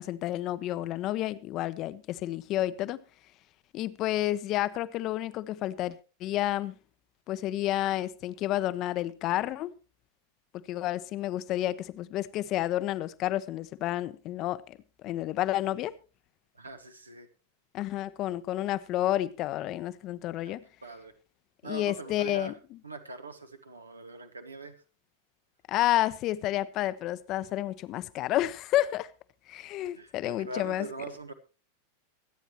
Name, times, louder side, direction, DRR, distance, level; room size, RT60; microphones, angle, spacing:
voice 1, 0.0-3.0 3.7-6.7 7.3-9.7 10.7-15.9 17.7-20.6 21.6-22.8 25.7-29.1 29.5-30.9, left 14 dB, 35° left, 0.7 m, -30 dB
voice 2, 16.5-17.3 20.4-21.1 21.6-22.5 22.8-24.8 29.9-31.3, right 3 dB, 80° right, 1.3 m, -42 dB
24.0 x 9.2 x 3.0 m
figure-of-eight pair, 90°, 0 cm